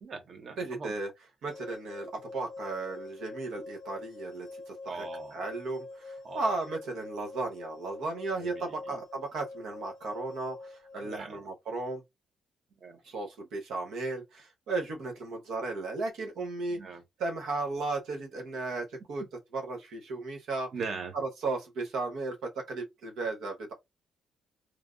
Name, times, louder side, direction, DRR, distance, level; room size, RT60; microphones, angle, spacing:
voice 1, 0.0-0.9 4.9-5.5 6.2-6.5 8.4-9.0 11.0-11.5 12.8-13.0 16.7-17.0 20.7-21.1, right 4 dB, 50° right, 1.0 m, -41 dB
voice 2, 0.6-1.1 1.4-5.0 5.3-12.0 13.0-16.8 17.2-19.2 19.5-20.7 21.4-23.7, right 3 dB, 75° right, 0.8 m, -35 dB
sound 1, 1.5-11.2, left 3 dB, 70° left, 0.7 m, -45 dB
3.2 x 2.4 x 2.4 m
cardioid pair, 90°, 0 cm